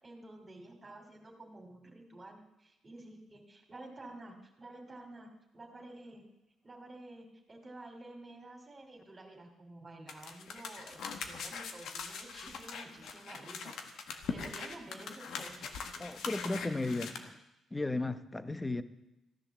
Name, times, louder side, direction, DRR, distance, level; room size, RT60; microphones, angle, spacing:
voice 1, 0.0-6.2 6.6-15.8, right 2 dB, 30° right, 2.8 m, -51 dB
sound 1, 10.1-17.2, left 5 dB, 75° left, 1.5 m, -42 dB
voice 2, 16.0-17.4 17.7-18.8, left 2 dB, 15° left, 1.0 m, -35 dB
14.5 x 10.5 x 7.3 m
cardioid pair, 90°, 0 cm